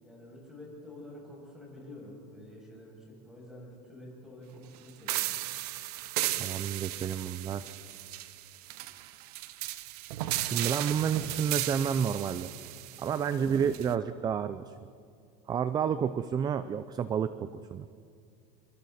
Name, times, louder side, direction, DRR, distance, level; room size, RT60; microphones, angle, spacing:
voice 1, 0.0-5.3 13.3-13.5, left 1 dB, 5° right, -3 dB, 7.4 m, -48 dB
sound 1, 5.1-13.9, right 15 dB, 80° right, 0.9 m, -35 dB
voice 2, 6.4-7.6 10.4-12.5 13.0-14.7 15.5-17.8, right 7 dB, 20° right, 13 dB, 0.5 m, -30 dB
28.0 x 23.5 x 4.3 m, 2.3 s
supercardioid pair, 155°, 20 cm